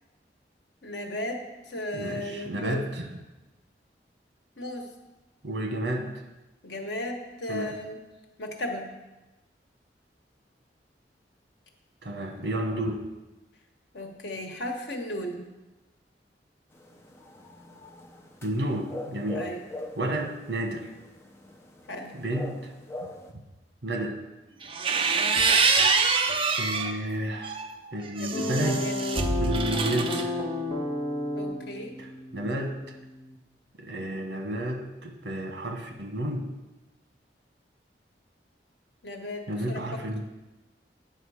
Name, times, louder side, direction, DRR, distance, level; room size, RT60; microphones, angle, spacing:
voice 1, 0.8-2.8 4.6-4.9 6.6-8.0 8.4-8.9 13.9-15.5 19.3-19.9 21.9-22.2 28.2-29.0 31.3-32.0 39.0-39.8, left 1 dB, 85° left, 2 dB, 1.3 m, -35 dB
voice 2, 1.9-3.1 5.4-6.1 7.5-7.8 12.0-13.0 18.4-19.4 20.0-20.9 22.1-22.7 23.8-24.2 26.6-27.6 27.9-28.8 29.4-30.4 32.0-32.1 32.3-32.8 33.8-36.5 39.5-40.2, right 1 dB, 75° right, 4 dB, 1.3 m, -31 dB
sound 1, 16.7-23.3, left 1 dB, 15° left, 0.7 m, -42 dB
sound 2, 24.6-26.9 27.4-30.2, right 4 dB, 30° right, 0.6 m, -25 dB
sound 3, 28.3-33.4, left 2 dB, 30° left, 1.3 m, -32 dB
9.2 x 5.9 x 4.9 m, 1.0 s
head